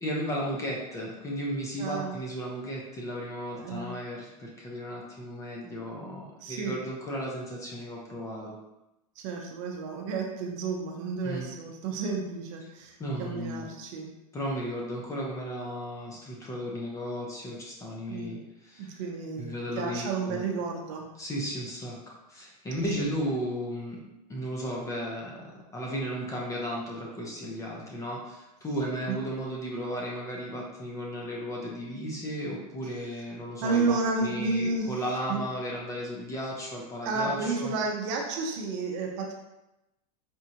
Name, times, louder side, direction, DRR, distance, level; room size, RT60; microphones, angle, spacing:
voice 1, 0.0-8.6 11.2-11.5 13.0-13.7 14.3-18.9 19.4-20.4 21.2-24.0 24.3-37.7, equal, 15° left, -2 dB, 0.6 m, -35 dB
voice 2, 1.8-2.2 3.5-3.9 6.4-6.8 9.2-14.1 18.1-18.3 18.8-21.1 23.0-23.1 29.1-29.2 33.6-34.9 35.3-35.4 37.0-39.3, right 4 dB, 45° right, 1 dB, 0.7 m, -31 dB
4.3 x 2.4 x 2.8 m, 0.93 s
supercardioid pair, 135°, 21 cm